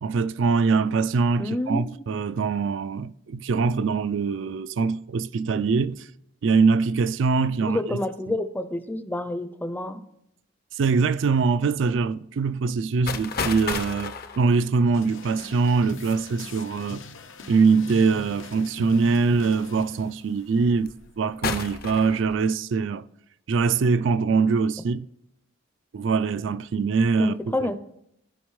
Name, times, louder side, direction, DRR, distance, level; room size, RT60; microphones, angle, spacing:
voice 1, 0.0-6.1 6.4-8.0 10.7-17.0 17.5-20.9 21.2-23.0 23.5-25.1 25.9-27.3 27.6-27.7, right 4 dB, 70° right, 0.4 m, -23 dB
voice 2, 1.4-1.9 7.6-10.0 27.2-27.7, left 1 dB, 10° left, 0.5 m, -28 dB
sound 1, 13.1-16.5 17.7-18.2 19.0-19.1 19.6-20.0 20.6-21.1 21.4-22.4, left 5 dB, 50° left, 0.6 m, -33 dB
sound 2, 14.9-20.9, left 2 dB, 85° left, 0.7 m, -42 dB
15.0 x 5.1 x 3.1 m
head